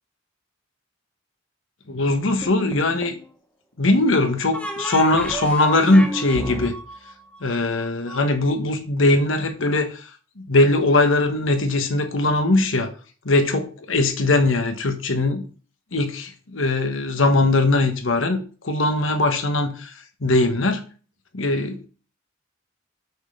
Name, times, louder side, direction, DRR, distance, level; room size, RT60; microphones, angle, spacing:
voice 1, 1.9-3.1 3.8-6.7 7.4-10.0 10.4-12.9 13.2-15.4 15.9-19.9 20.2-20.8 21.3-21.8, left 2 dB, 80° left, 1.3 m, -20 dB
sound 1, 2.4-3.3 4.5-8.2, right 1 dB, 5° left, 1.2 m, -32 dB
6.4 x 5.2 x 6.5 m
head